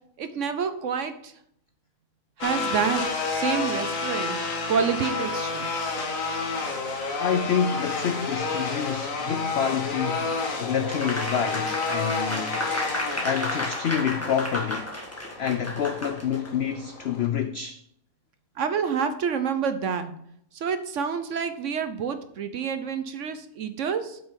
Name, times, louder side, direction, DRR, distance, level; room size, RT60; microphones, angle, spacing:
voice 1, 0.2-1.3 2.4-4.4 4.7-5.7 18.6-20.1 20.5-24.2, right 6 dB, 60° right, 0.9 m, -28 dB
sound 1, 2.4-17.3, left 3 dB, 60° left, 1.6 m, -30 dB
voice 2, 7.2-10.3 10.6-12.6 13.2-14.9 15.4-17.8, left 8 dB, 80° left, 0.5 m, -28 dB
Applause, 10.9-16.5, left 1 dB, 10° left, 1.4 m, -32 dB
8.0 x 5.9 x 5.2 m
omnidirectional pair, 1.7 m